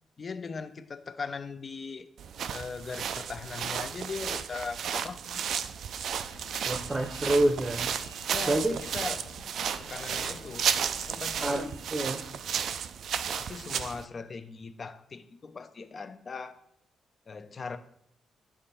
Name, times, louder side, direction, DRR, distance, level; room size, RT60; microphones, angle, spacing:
voice 1, 0.2-2.1 2.5-5.4 8.3-9.3 9.8-10.7 11.1-11.7 13.4-16.6 17.3-17.8, left 5 dB, 45° left, 10 dB, 0.6 m, -39 dB
sound 1, 2.2-14.0, right 8 dB, 65° right, 0.3 m, -33 dB
sound 2, 6.1-12.0, left 2 dB, 80° left, 0.9 m, -50 dB
voice 2, 6.6-7.9 8.5-8.8 11.4-12.2, right 1 dB, 25° right, 6 dB, 0.7 m, -27 dB
6.7 x 3.6 x 4.3 m, 0.74 s
hypercardioid pair, 45°, 0 cm